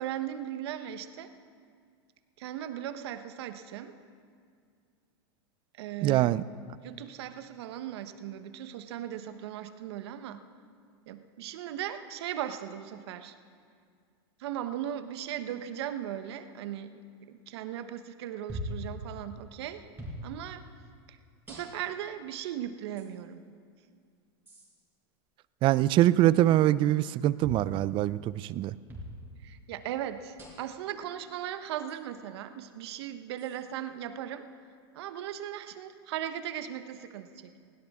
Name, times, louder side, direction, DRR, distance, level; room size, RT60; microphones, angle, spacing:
voice 1, 0.0-1.3 2.4-4.0 5.8-6.3 6.8-10.4 11.1-13.3 14.4-17.0 17.3-19.9 20.2-20.7 21.1-21.2 21.5-23.4 29.4-34.4 34.9-37.7, right 10 dB, 70° right, 10 dB, 1.0 m, -38 dB
voice 2, 6.0-6.4 25.6-28.8, right 14 dB, 35° right, 18 dB, 0.4 m, -24 dB
sound 1, 18.5-18.9 20.0-20.2 21.5-22.0 23.0-23.1 24.5-24.7 27.4-27.7 28.9-29.1 30.4-30.8 31.9-32.0 33.4-33.6, left 1 dB, 15° right, 4.9 m, -40 dB
20.5 x 17.0 x 3.6 m, 2.2 s
hypercardioid pair, 120°, 14 cm